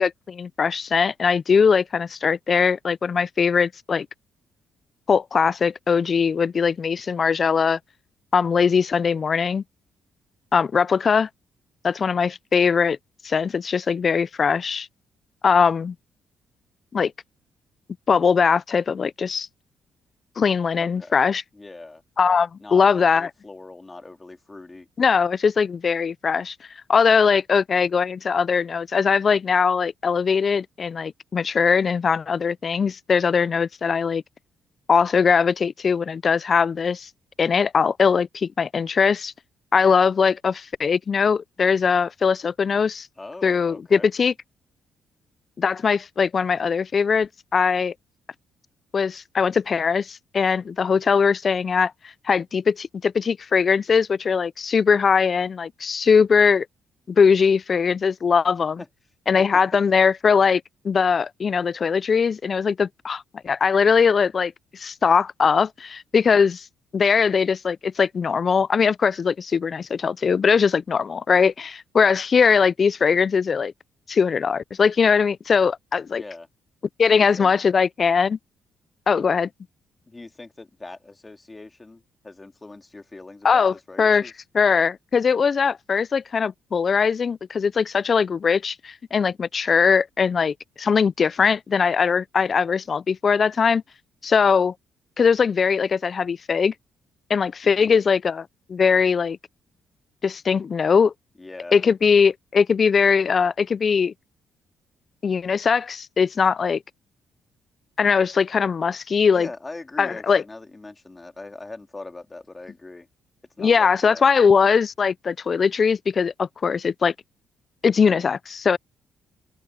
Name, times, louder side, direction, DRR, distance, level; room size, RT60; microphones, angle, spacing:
voice 1, 0.0-4.1 5.1-7.8 8.3-9.6 10.5-11.3 11.8-13.0 13.2-14.9 15.4-15.9 16.9-17.1 18.1-19.5 20.4-21.4 22.2-23.3 25.0-26.5 26.9-34.2 34.9-37.1 37.4-39.3 39.7-43.1 43.4-44.3 45.6-47.9 48.9-56.7 57.1-58.8 59.3-66.7 66.9-73.7 74.1-76.2 77.0-78.4 79.1-79.5 83.4-93.8 94.2-94.7 95.2-96.7 97.3-99.4 100.2-101.1 101.7-104.1 105.2-106.8 108.0-109.5 110.0-110.4 113.6-117.1 117.8-118.8, left 6 dB, 45° left, 0.4 m, -20 dB
voice 2, 20.8-21.2 21.5-22.0 22.6-24.9 43.2-44.1 58.8-58.9 59.3-59.4 76.1-76.5 77.1-77.5 80.1-84.3 97.8-98.0 101.4-101.8 109.3-113.1 113.6-114.3, left 2 dB, 20° left, 2.6 m, -41 dB
open air
cardioid pair, 90°, 0 cm